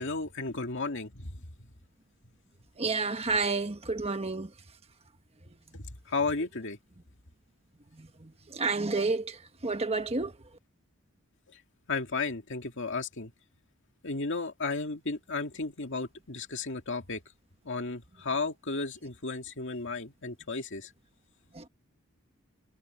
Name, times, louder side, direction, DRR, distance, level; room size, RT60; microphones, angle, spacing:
voice 1, 0.0-1.3 5.7-6.8 11.9-13.3 14.0-17.2 17.7-20.9, left 3 dB, 60° left, 2.2 m, -34 dB
voice 2, 2.8-4.5 7.9-10.4 21.5-21.7, right 3 dB, 30° right, 1.3 m, -30 dB
head